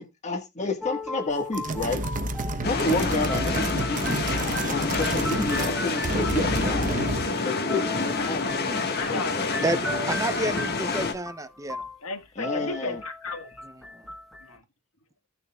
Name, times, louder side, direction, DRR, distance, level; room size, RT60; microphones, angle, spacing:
voice 1, 0.0-2.0 2.6-7.1 7.4-9.6 12.4-13.0, left 2 dB, 35° left, 1.6 m, -31 dB
sound 1, 0.8-6.7 7.7-14.6, left 2 dB, ahead, 1.2 m, -38 dB
sound 2, 1.5-5.8 6.0-7.3, right 2 dB, 40° right, 0.9 m, -30 dB
sound 3, 2.6-11.1, left 3 dB, 50° left, 1.6 m, -28 dB
voice 2, 2.7-3.1 8.1-8.3 9.0-9.5 10.4-10.9 12.0-13.7 14.4-14.6, left 3 dB, 80° left, 1.6 m, -36 dB
voice 3, 9.6-11.9 13.9-14.1, right 2 dB, 15° right, 0.7 m, -30 dB
17.0 x 6.8 x 2.3 m
head